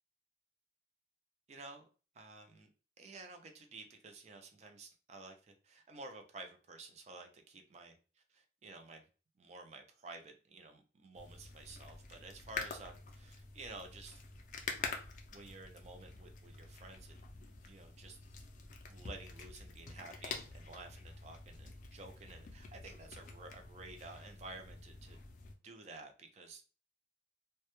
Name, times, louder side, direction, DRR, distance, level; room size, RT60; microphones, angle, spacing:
voice 1, 1.5-1.9 2.1-2.7 3.0-7.9 8.3-9.0 9.4-14.2 15.3-18.2 18.9-25.2 25.6-26.8, right 3 dB, 40° right, 5 dB, 0.4 m, -52 dB
sound 1, 11.1-25.5, left 4 dB, 45° left, 0.4 m, -47 dB
2.1 x 2.0 x 2.9 m, 0.35 s
head